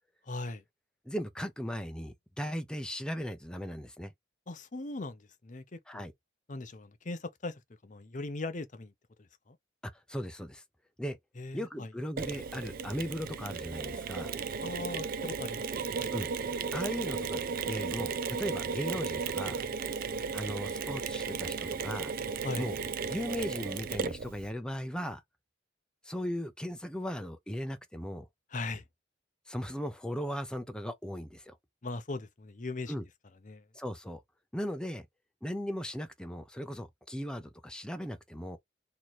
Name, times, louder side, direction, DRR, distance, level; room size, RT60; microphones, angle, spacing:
voice 1, 0.3-0.6 4.5-6.1 6.5-8.9 9.5-9.6 11.4-11.9 14.6-16.1 22.4-22.7 28.5-28.8 31.8-32.9 33.4-33.6, left 2 dB, 40° left, 0.7 m, -39 dB
voice 2, 1.1-4.1 5.9-6.1 10.1-10.6 11.0-11.2 11.5-14.3 16.1-16.3 16.7-17.4 17.7-19.6 20.3-22.1 22.6-22.8 23.1-25.2 26.0-28.3 29.5-31.6 32.9-33.0 33.7-34.2 34.5-35.0 35.4-38.6, equal, 5° left, 0.6 m, -37 dB
Mechanisms, 12.2-24.5, right 5 dB, 50° right, 0.4 m, -35 dB
3.1 x 2.7 x 4.1 m
head